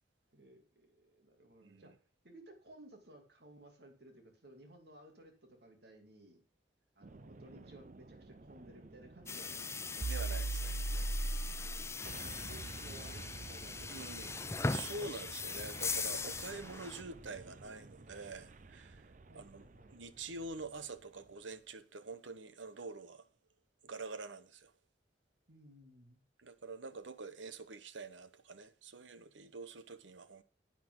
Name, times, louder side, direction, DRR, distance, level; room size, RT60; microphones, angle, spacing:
voice 1, 0.3-1.9 2.2-6.4 7.0-10.0 11.6-14.6 19.3-20.0 25.5-26.2, right 1 dB, 60° right, 2.5 m, -58 dB
voice 2, 1.6-1.9 10.0-10.8 13.9-14.3 14.7-19.1 19.3-19.6 19.9-23.3 23.8-24.7 26.4-30.4, right 3 dB, 85° right, 1.0 m, -46 dB
sound 1, 7.0-19.8, right 3 dB, 45° right, 0.6 m, -43 dB
sound 2, 9.3-17.0, left 4 dB, 15° left, 0.6 m, -40 dB
10.5 x 8.6 x 3.7 m
head